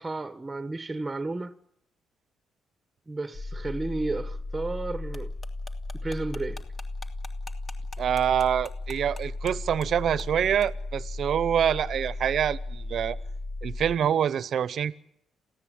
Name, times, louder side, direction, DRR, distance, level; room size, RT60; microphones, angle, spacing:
voice 1, 0.0-1.5 3.1-5.3 6.0-6.6, right 2 dB, 20° right, 1.1 m, -32 dB
sound 1, 3.3-13.9, left 2 dB, 60° left, 7.0 m, -35 dB
sound 2, 5.1-9.5 9.8-9.9 10.2-10.3 10.6-10.7, left 4 dB, 40° left, 2.9 m, -45 dB
voice 2, 8.0-13.2 13.6-14.9, right 9 dB, 60° right, 0.9 m, -26 dB
28.0 x 16.0 x 8.9 m
cardioid pair, 90°, 0 cm